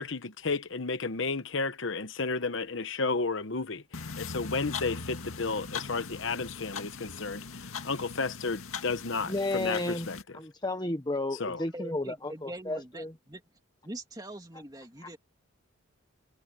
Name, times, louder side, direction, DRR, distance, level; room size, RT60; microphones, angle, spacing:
voice 1, 0.0-10.2 11.4-11.6, left 4 dB, 60° left, 1.0 m, -32 dB
sound 1, 3.9-10.2, left 5 dB, 80° left, 2.0 m, -40 dB
voice 2, 9.2-10.1 10.3-13.1, left 2 dB, 20° left, 1.0 m, -32 dB
voice 3, 11.7-13.4 13.8-15.2, right 1 dB, 20° right, 2.7 m, -43 dB
head